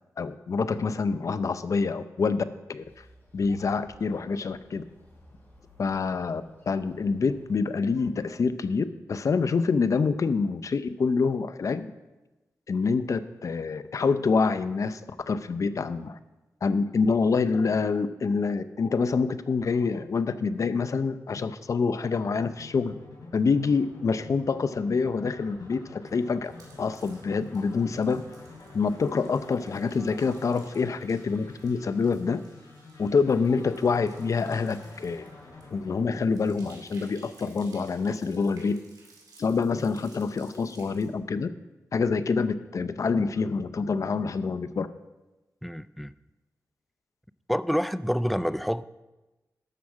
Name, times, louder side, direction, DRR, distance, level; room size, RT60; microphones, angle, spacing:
voice 1, 0.2-2.8 3.3-4.8 5.8-11.9 12.7-16.2 16.6-23.0 23.3-26.5 26.8-28.2 28.7-32.4 33.0-35.3 35.7-38.8 39.4-41.5 41.9-44.9, left 4 dB, 60° left, 13 dB, 0.6 m, -26 dB
sound 1, 2.8-8.4, left 1 dB, 35° left, 4.0 m, -57 dB
uplifting acid, 22.4-37.3, left 3 dB, 85° left, 4.3 m, -49 dB
sound 2, 26.0-41.1, right 3 dB, 90° right, 2.4 m, -57 dB
voice 2, 45.6-46.1 47.5-48.8, equal, ahead, 14 dB, 0.3 m, -27 dB
12.5 x 4.8 x 7.3 m, 1.1 s
wide cardioid pair, 100°, 6 cm